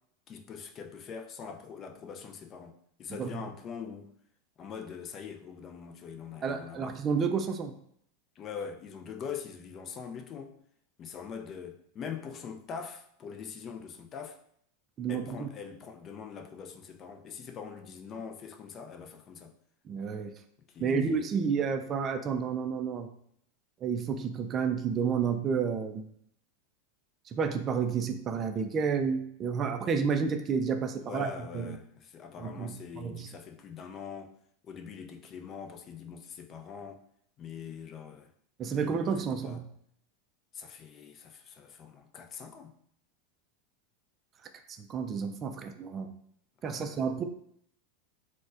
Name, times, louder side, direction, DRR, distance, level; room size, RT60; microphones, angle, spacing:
voice 1, 0.3-2.7 3.0-4.1 4.6-7.0 8.4-10.5 11.0-14.4 15.1-19.5 20.7-21.3 29.8-29.9 31.0-31.8 32.1-34.3 34.7-37.0 37.4-38.3 38.8-39.6 40.5-42.7 46.6-47.0, left 6 dB, 35° left, 5 dB, 0.4 m, -43 dB
voice 2, 6.4-7.7 15.0-15.5 19.9-20.3 20.8-23.1 23.8-26.1 27.3-31.8 32.4-33.3 38.6-39.6 44.8-46.1 46.6-47.2, right 6 dB, 35° right, 7 dB, 0.3 m, -31 dB
4.1 x 2.1 x 2.4 m, 0.68 s
hypercardioid pair, 110°, 0 cm